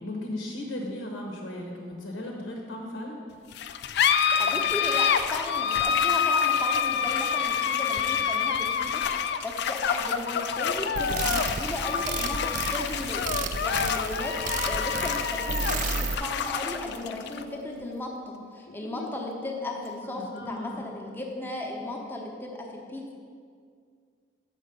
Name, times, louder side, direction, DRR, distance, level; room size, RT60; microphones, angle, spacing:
voice 1, 0.0-3.2 20.0-20.9, left 1 dB, 85° left, 0 dB, 0.9 m, -36 dB
sound 1, 3.5-20.5, left 7 dB, 60° left, 0.3 m, -28 dB
voice 2, 4.4-13.3 13.6-23.1, left 1 dB, 10° left, -1 dB, 0.8 m, -36 dB
sound 2, 10.9-16.1, right 4 dB, 40° right, 0.3 m, -32 dB
6.1 x 5.2 x 6.7 m, 2.2 s
head